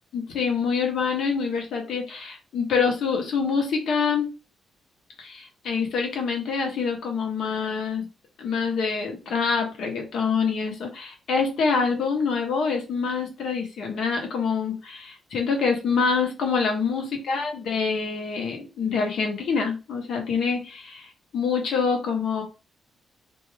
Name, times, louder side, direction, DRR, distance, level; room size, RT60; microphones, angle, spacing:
voice 1, 0.1-4.3 5.2-8.1 8.4-22.4, left 5 dB, 75° left, 2 dB, 0.9 m, -26 dB
2.6 x 2.3 x 3.2 m, 0.29 s
cardioid pair, 90°, 0 cm